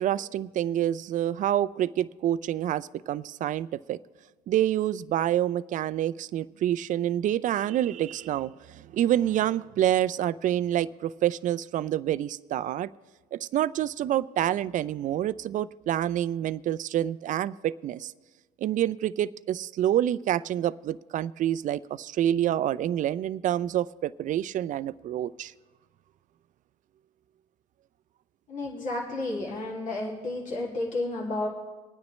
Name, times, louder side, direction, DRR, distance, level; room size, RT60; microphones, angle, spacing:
voice 1, 0.0-4.0 4.5-12.9 13.3-18.1 18.6-25.5, right 12 dB, 50° right, 18 dB, 0.4 m, -27 dB
voice 2, 28.5-31.5, left 2 dB, 50° left, -3 dB, 2.3 m, -31 dB
22.0 x 9.6 x 3.1 m, 1.3 s
cardioid pair, 110°, 17 cm